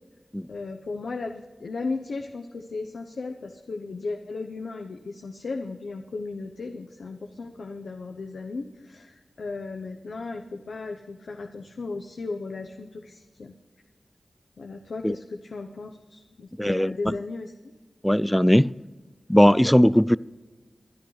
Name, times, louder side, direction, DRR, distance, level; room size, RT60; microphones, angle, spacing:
voice 1, 0.5-13.5 14.6-17.7, left 3 dB, 85° left, 0.9 m, -36 dB
voice 2, 16.6-17.1 18.0-18.7 19.3-20.2, equal, 5° left, 0.4 m, -19 dB
23.5 x 10.5 x 3.3 m
cardioid pair, 50°, 0 cm